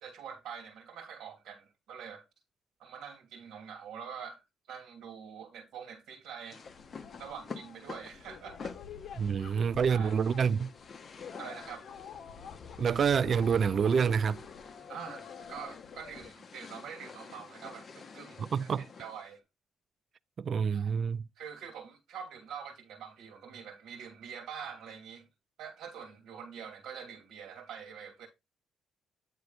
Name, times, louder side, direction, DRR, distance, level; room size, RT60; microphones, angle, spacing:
voice 1, 0.0-2.2 2.8-4.4 4.7-6.6 7.2-8.7 9.9-10.1 11.4-11.8 14.9-19.4 20.7-21.0 21.3-25.3 25.6-28.3, right 7 dB, 80° right, 1.6 m, -45 dB
sound 1, 6.5-19.3, left 5 dB, 40° left, 1.2 m, -49 dB
sound 2, 6.6-16.3, left 7 dB, 65° left, 1.2 m, -48 dB
voice 2, 9.2-10.7 12.8-14.4 18.4-18.8 20.4-21.2, right 6 dB, 50° right, 0.4 m, -27 dB
9.3 x 3.1 x 5.1 m
cardioid pair, 90°, 0 cm